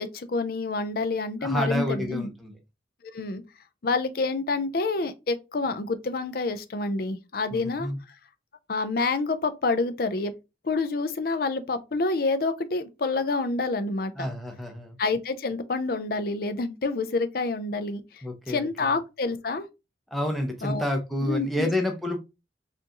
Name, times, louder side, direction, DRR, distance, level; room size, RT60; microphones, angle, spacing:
voice 1, 0.0-2.3 3.0-3.4 3.8-7.9 8.7-10.3 10.6-14.3 15.0-19.7 20.6-20.8 21.2-21.7, left 3 dB, 50° left, 0.5 m, -28 dB
voice 2, 1.4-2.5 7.5-8.0 14.2-15.0 18.2-18.9 20.1-22.2, left 1 dB, ahead, 0.7 m, -29 dB
4.6 x 2.6 x 2.9 m
head